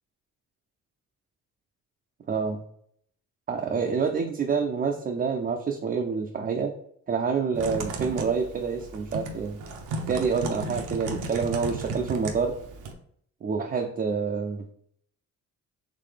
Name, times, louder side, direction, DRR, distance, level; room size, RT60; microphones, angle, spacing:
voice 1, 2.3-2.6 3.5-6.7 7.1-9.6 10.1-12.5 13.4-14.6, right 5 dB, 30° right, 2 dB, 0.5 m, -27 dB
Typing, 7.5-12.9, right 3 dB, 80° right, 0.8 m, -35 dB
4.0 x 3.2 x 3.2 m, 0.67 s
cardioid pair, 90°, 30 cm